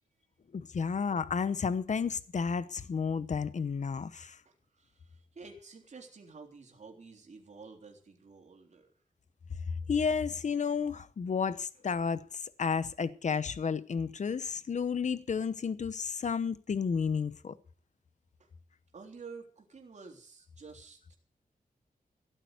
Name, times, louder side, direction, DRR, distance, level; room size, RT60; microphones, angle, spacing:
voice 1, 0.5-4.4 9.9-12.2 12.6-17.5, left 6 dB, 50° left, 0.9 m, -31 dB
voice 2, 4.5-9.0 18.4-18.5 18.9-21.2, right 4 dB, 50° right, 3.7 m, -51 dB
16.0 x 9.1 x 8.0 m
wide cardioid pair, 125°, 15 cm